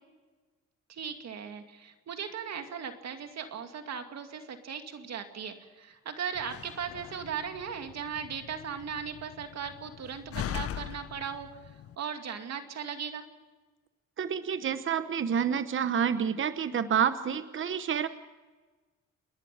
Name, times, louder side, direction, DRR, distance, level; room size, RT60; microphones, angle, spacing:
voice 1, 0.9-11.5 12.0-13.2, right 7 dB, 60° right, 6 dB, 2.5 m, -38 dB
Slam, 6.3-12.0, left 11 dB, 50° left, 0.7 m, -41 dB
voice 2, 14.2-18.1, right 7 dB, 40° right, 12 dB, 1.0 m, -28 dB
29.5 x 11.0 x 8.7 m, 1.3 s
cardioid pair, 90°, 30 cm